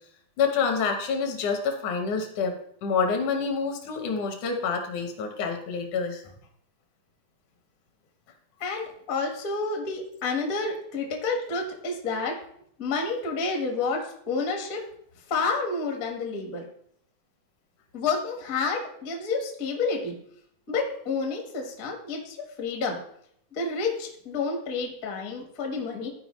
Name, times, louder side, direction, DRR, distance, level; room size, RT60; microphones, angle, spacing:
voice 1, 0.4-6.3, left 5 dB, 75° left, 4 dB, 2.4 m, -27 dB
voice 2, 8.6-12.4 12.8-14.8 15.3-16.7 17.9-20.1 20.7-23.0 23.5-26.1, left 4 dB, 55° left, 1 dB, 0.9 m, -29 dB
12.5 x 4.7 x 3.0 m, 0.67 s
omnidirectional pair, 3.7 m